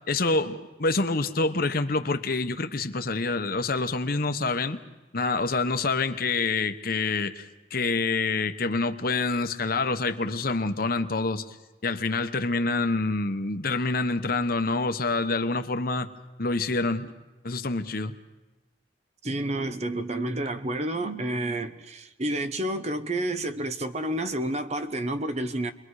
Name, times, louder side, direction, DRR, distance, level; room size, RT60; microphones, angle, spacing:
voice 1, 0.1-4.8 5.1-11.6 11.8-16.1 16.4-17.1 17.4-18.1, left 3 dB, 55° left, 1.1 m, -27 dB
voice 2, 19.2-25.7, right 1 dB, 40° right, 0.9 m, -30 dB
30.0 x 22.5 x 4.9 m
head